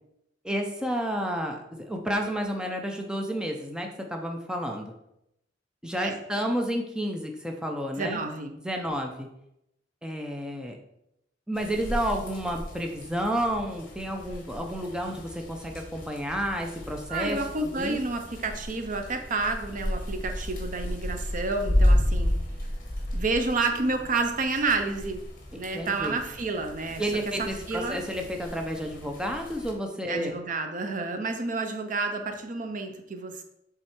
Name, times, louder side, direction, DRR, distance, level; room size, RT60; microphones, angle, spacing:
voice 1, 0.4-4.9 5.8-8.2 8.6-9.3 10.0-10.8 11.5-18.0 25.7-26.2 27.0-30.4, equal, 5° right, 2 dB, 0.7 m, -31 dB
voice 2, 8.0-8.5 17.1-22.3 23.1-25.2 25.6-27.0 27.4-28.0 30.1-33.4, right 3 dB, 45° right, 5 dB, 0.6 m, -30 dB
sound 1, 11.5-29.7, left 1 dB, 50° left, 1.6 m, -32 dB
7.7 x 3.7 x 4.4 m, 0.81 s
head